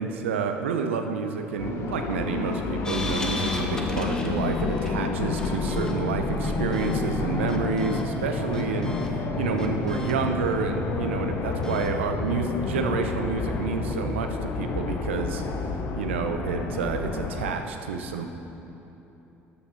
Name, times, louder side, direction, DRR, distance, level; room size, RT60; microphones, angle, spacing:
voice 1, 0.0-8.9 9.4-15.4 15.9-18.3, right 5 dB, 75° right, 6 dB, 0.6 m, -29 dB
sound 1, 1.6-17.6, left 4 dB, 45° left, 0.9 m, -29 dB
sound 2, 2.8-5.0 5.4-6.0 6.4-7.0 7.5-8.1 8.5-9.1 9.6-10.2 11.6-11.9, left 1 dB, 10° left, 1.1 m, -35 dB
13.5 x 9.8 x 2.7 m, 3.0 s
figure-of-eight pair, 55°, 7 cm